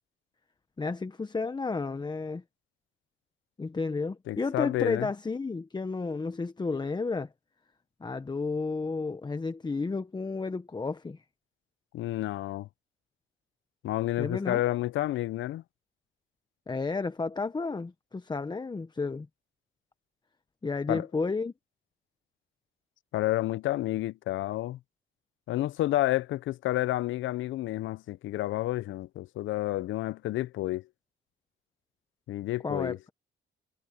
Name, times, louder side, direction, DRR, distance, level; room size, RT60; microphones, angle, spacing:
voice 1, 0.8-2.4 3.6-7.3 8.0-11.2 14.2-14.6 16.7-19.3 20.6-21.5 32.6-33.1, left 4 dB, 20° left, 1.0 m, -32 dB
voice 2, 4.3-5.1 11.9-12.7 13.8-15.6 20.9-21.1 23.1-24.8 25.5-30.9 32.3-33.0, left 15 dB, 75° left, 0.6 m, -30 dB
cardioid pair, 90°, 20 cm